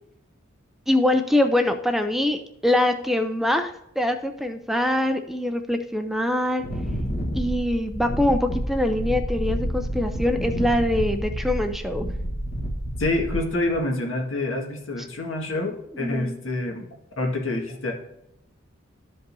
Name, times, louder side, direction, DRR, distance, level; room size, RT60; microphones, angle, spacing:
voice 1, 0.9-6.6 7.4-12.1 15.0-15.1 15.9-16.4, left 1 dB, ahead, 7 dB, 0.4 m, -24 dB
Wind, 6.6-13.8, equal, 50° left, 1.3 m, -29 dB
voice 2, 13.0-16.8 17.2-17.9, left 2 dB, 75° left, 1 dB, 1.8 m, -27 dB
12.5 x 5.3 x 2.7 m, 0.80 s
head